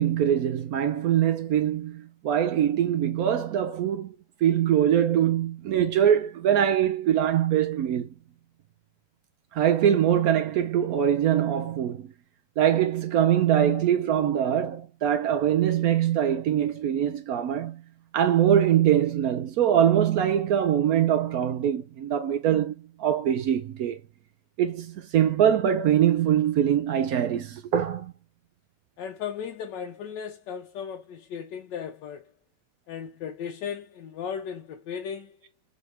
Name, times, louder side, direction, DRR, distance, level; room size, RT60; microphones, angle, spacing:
voice 1, 0.0-4.2 4.4-8.1 9.5-12.1 12.6-17.8 18.1-22.7 23.0-24.0 24.6-24.9 25.1-28.1, right 10 dB, 70° right, 0.9 m, -23 dB
voice 2, 29.0-32.3 32.9-35.4, left 7 dB, 85° left, 1.3 m, -36 dB
4.0 x 3.2 x 2.8 m
omnidirectional pair, 1.9 m